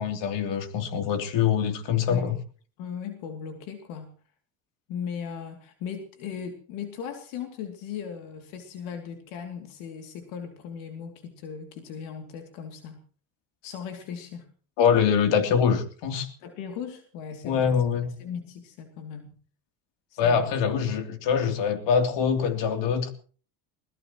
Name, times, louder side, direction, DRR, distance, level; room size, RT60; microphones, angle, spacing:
voice 1, 0.0-2.3 14.8-16.3 17.4-18.1 20.2-23.1, left 7 dB, 65° left, 5 dB, 3.3 m, -24 dB
voice 2, 2.8-4.1 4.9-13.0 13.6-14.5 16.4-19.4 20.1-20.6, left 7 dB, 80° left, 4 dB, 2.9 m, -38 dB
21.5 x 20.0 x 3.1 m, 0.42 s
supercardioid pair, 105°, 47 cm